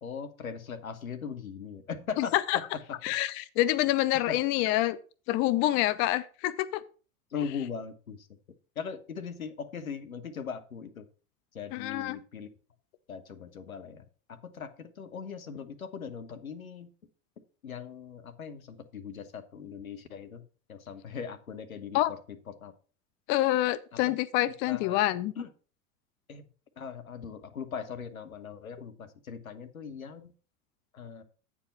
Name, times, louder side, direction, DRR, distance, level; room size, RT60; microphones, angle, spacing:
voice 1, 0.0-2.6 4.3-4.4 7.3-8.3 8.8-11.1 11.5-12.5 13.1-16.9 17.6-20.4 20.7-22.7 24.7-25.0 25.4-25.5 26.3-26.5 26.8-30.3 30.9-31.2, left 6 dB, 80° left, 9 dB, 1.0 m, -39 dB
voice 2, 2.2-2.6 3.0-5.0 5.3-6.8 11.7-12.2 21.9-22.1 23.3-25.3, left 15 dB, 30° left, 17 dB, 0.4 m, -27 dB
8.7 x 4.7 x 5.5 m, 0.38 s
figure-of-eight pair, 85°, 41 cm